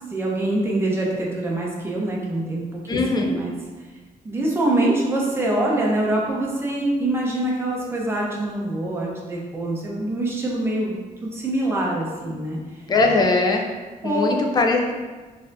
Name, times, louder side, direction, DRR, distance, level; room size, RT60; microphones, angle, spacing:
voice 1, 0.1-3.5 4.2-12.6 14.0-14.3, right 1 dB, 15° right, -3 dB, 0.7 m, -24 dB
voice 2, 2.9-3.4 12.9-13.7 14.0-14.9, left 3 dB, 30° left, 3 dB, 0.4 m, -20 dB
4.0 x 2.6 x 2.5 m, 1.3 s
wide cardioid pair, 130°, 15 cm